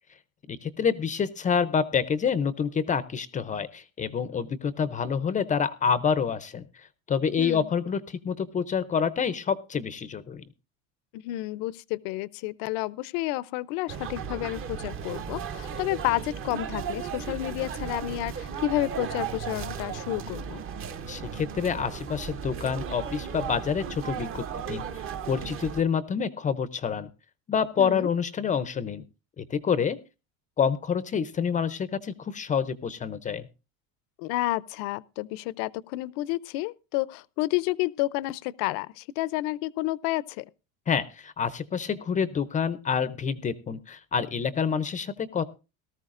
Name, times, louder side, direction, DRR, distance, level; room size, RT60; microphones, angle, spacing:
voice 1, 0.5-10.4 21.1-24.8 25.3-27.1 27.5-29.0 29.4-30.0 30.6-33.4 40.9-45.4, left 6 dB, 20° left, 0.5 m, -27 dB
voice 2, 7.4-7.7 11.1-20.6 27.8-28.1 34.2-40.4, left 17 dB, 70° left, 0.6 m, -30 dB
sound 1, 13.9-25.8, right 7 dB, 35° right, 1.0 m, -35 dB
18.5 x 13.5 x 2.5 m
cardioid pair, 145°, 35 cm